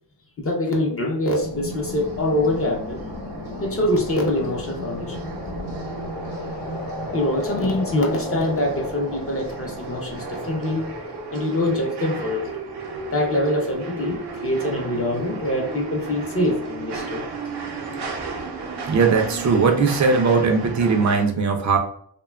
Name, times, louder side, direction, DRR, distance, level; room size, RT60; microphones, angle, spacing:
voice 1, 0.4-3.0 3.6-5.2 5.6-5.7 7.1-10.9 11.3-12.5 13.1-17.2, left 1 dB, 35° left, 0 dB, 0.6 m, -24 dB
sound 1, 1.4-11.9, left 1 dB, 65° left, 0.8 m, -35 dB
sound 2, 1.7-21.2, right 4 dB, 90° right, 0.6 m, -34 dB
voice 2, 18.9-21.8, right 4 dB, 45° right, 3 dB, 0.4 m, -19 dB
2.9 x 2.2 x 2.2 m, 0.62 s
wide cardioid pair, 130°, 39 cm